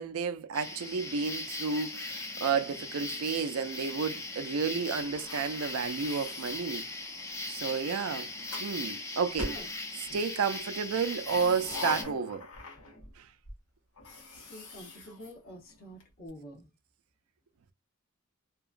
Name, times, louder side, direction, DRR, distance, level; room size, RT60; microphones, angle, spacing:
voice 1, 0.0-6.9 7.5-8.3 8.6-9.5 10.1-12.5, right 5 dB, 80° right, 0.4 m, -31 dB
sound 1, 0.5-12.0, left 2 dB, 15° left, 0.4 m, -39 dB
sound 2, 5.0-7.3 8.0-8.7 9.4-10.3 11.0-13.2 13.4-13.6 14.0-16.0, left 3 dB, 85° left, 0.9 m, -43 dB
voice 2, 14.3-16.7, right 1 dB, 45° left, 0.9 m, -47 dB
2.8 x 2.2 x 2.4 m
head